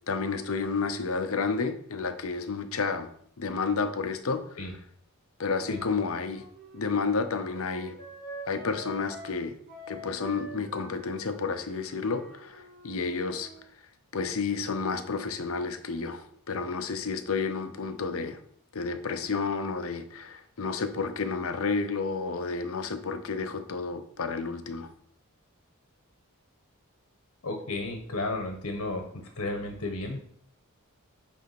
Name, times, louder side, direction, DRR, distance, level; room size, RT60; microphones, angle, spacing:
voice 1, 0.1-3.1 3.4-4.8 5.4-6.4 6.7-8.0 8.5-9.6 9.9-13.5 14.1-18.4 18.7-24.9, left 4 dB, 70° left, 9 dB, 0.7 m, -31 dB
Wind instrument woodwind instrument, 5.4-9.4 9.7-13.6, right 1 dB, 45° right, 2.7 m, -46 dB
voice 2, 27.4-29.1 29.3-30.2, left 2 dB, 85° left, 4 dB, 1.2 m, -33 dB
8.4 x 3.5 x 5.9 m, 0.66 s
head